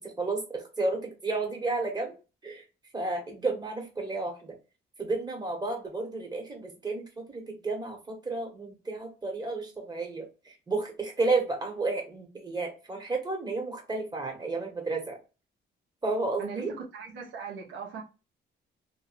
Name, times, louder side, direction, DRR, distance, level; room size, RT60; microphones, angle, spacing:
voice 1, 0.0-2.1 2.4-2.6 2.9-4.6 5.0-15.2 16.0-16.7, right 3 dB, 20° right, 1.5 m, -32 dB
voice 2, 16.4-18.0, right 5 dB, 85° right, 1.2 m, -39 dB
2.6 x 2.6 x 4.2 m
cardioid pair, 90°, 20 cm